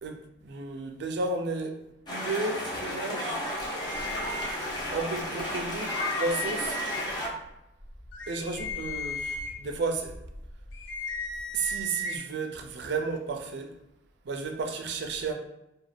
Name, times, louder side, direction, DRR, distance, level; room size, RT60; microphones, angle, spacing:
voice 1, 0.0-1.8 2.1-3.4 4.8-6.8 8.3-10.2 11.5-13.7 14.2-15.3, right 3 dB, 60° right, 0.4 m, -33 dB
sound 1, 2.1-7.3, equal, 20° left, 0.6 m, -33 dB
sound 2, 3.4-5.0 5.4-5.5 5.7-7.3 7.8-12.2, left 2 dB, 75° left, 0.5 m, -36 dB
2.4 x 2.3 x 3.2 m
head